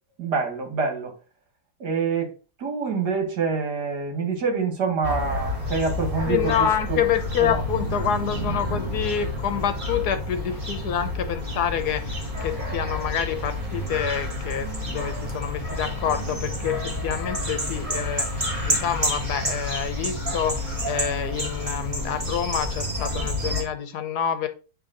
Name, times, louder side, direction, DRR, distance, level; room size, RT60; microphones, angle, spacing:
voice 1, 0.2-1.1 1.8-2.3 2.6-6.5 6.9-7.0 7.5-7.6, right 5 dB, 70° right, 2.2 m, -26 dB
sound 1, 5.0-23.6, left 1 dB, 25° right, 1.9 m, -29 dB
voice 2, 6.2-24.5, left 8 dB, 70° left, 1.3 m, -27 dB
8.9 x 3.3 x 3.8 m
omnidirectional pair, 1.9 m